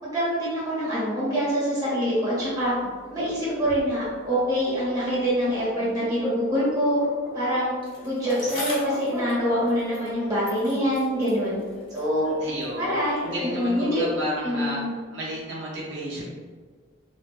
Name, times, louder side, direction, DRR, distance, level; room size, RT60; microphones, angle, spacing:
voice 1, 0.0-2.7 3.1-7.0 7.3-7.7 8.0-11.6 11.9-12.3 12.8-14.0 14.4-14.9, equal, 20° right, -8 dB, 1.0 m, -25 dB
sound 1, 2.6-3.9 4.3-4.5 4.7-6.6 6.9-8.5 8.7-10.9 11.7-13.7, right 1 dB, ahead, 0.4 m, -39 dB
Bicycle, 7.8-10.2 10.4-12.8 13.6-13.7, left 1 dB, 25° left, 0.7 m, -41 dB
voice 2, 12.4-12.9 13.2-14.8 15.1-16.2, equal, 70° right, -6 dB, 0.6 m, -32 dB
2.5 x 2.3 x 2.4 m, 1.5 s
head